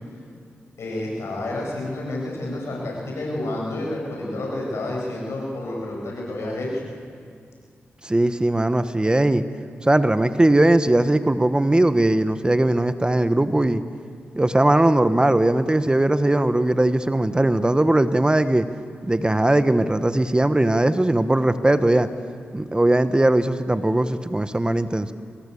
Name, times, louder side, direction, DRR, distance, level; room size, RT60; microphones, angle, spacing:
voice 1, 0.8-6.8, left 1 dB, 80° left, -2 dB, 7.9 m, -29 dB
voice 2, 8.0-9.4 9.8-13.8 14.3-18.7 19.1-22.1 22.5-25.1, right 1 dB, 20° right, 11 dB, 1.1 m, -19 dB
25.0 x 20.5 x 8.5 m, 2.2 s
cardioid pair, 60°, 5 cm